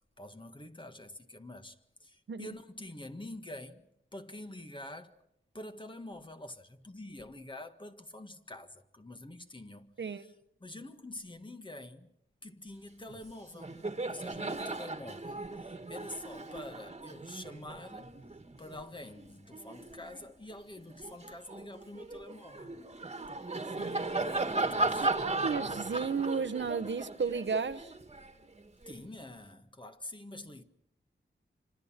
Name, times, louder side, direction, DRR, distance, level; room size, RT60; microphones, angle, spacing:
voice 1, 0.2-3.9 4.1-5.1 5.5-10.3 10.6-12.1 12.4-13.8 14.1-18.1 18.6-22.8 24.6-25.1 28.9-30.6, left 1 dB, 25° left, 1.7 m, -46 dB
Laughter, 13.1-13.3 13.5-20.3 20.8-28.9, right 2 dB, 30° right, 1.9 m, -37 dB
voice 2, 25.2-27.9, right 5 dB, 70° right, 1.1 m, -33 dB
28.5 x 26.0 x 5.9 m
wide cardioid pair, 110°, 20 cm